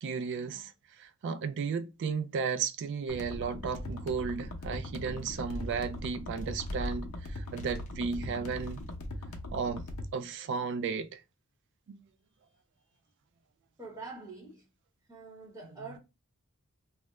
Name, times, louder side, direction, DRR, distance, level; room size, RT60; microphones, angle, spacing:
voice 1, 0.0-0.7 1.0-8.8 9.5-9.8 10.1-11.2 11.9-12.0, right 5 dB, 55° right, 0.3 m, -34 dB
sound 1, 3.1-10.1, left 1 dB, 75° left, 0.6 m, -40 dB
sound 2, 4.0-4.7 5.1-7.0 7.5-8.1 8.4-9.1, equal, 35° left, 0.5 m, -43 dB
voice 2, 13.8-14.7 15.1-16.0, right 3 dB, 15° right, 0.9 m, -45 dB
2.2 x 2.0 x 2.9 m
head